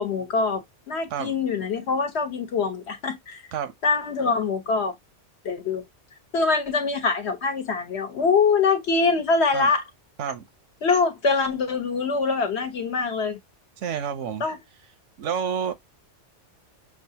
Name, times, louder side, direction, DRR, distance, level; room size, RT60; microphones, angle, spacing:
voice 1, 0.0-3.4 3.8-4.9 5.4-5.9 6.3-9.8 10.8-13.4 14.4-14.6, left 4 dB, 65° left, 1.2 m, -24 dB
voice 2, 13.8-14.4 15.2-15.7, right 7 dB, 80° right, 1.1 m, -29 dB
6.2 x 2.4 x 2.7 m
omnidirectional pair, 1.2 m